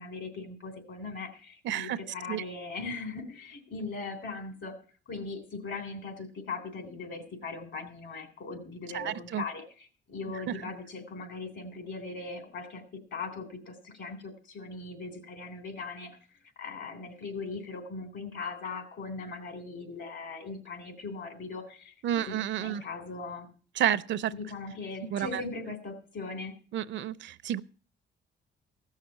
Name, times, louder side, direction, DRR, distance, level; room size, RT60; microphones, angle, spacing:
voice 1, 0.0-4.7 5.1-16.2 16.5-21.9 22.3-23.5 24.3-26.5, left 4 dB, 70° left, 3.5 m, -39 dB
voice 2, 1.6-2.0 2.3-2.4 8.9-9.4 10.5-10.6 22.0-22.8 23.8-24.3 25.1-25.4 26.7-27.6, right 10 dB, 70° right, 0.5 m, -30 dB
15.5 x 6.5 x 6.9 m
cardioid pair, 90°, 20 cm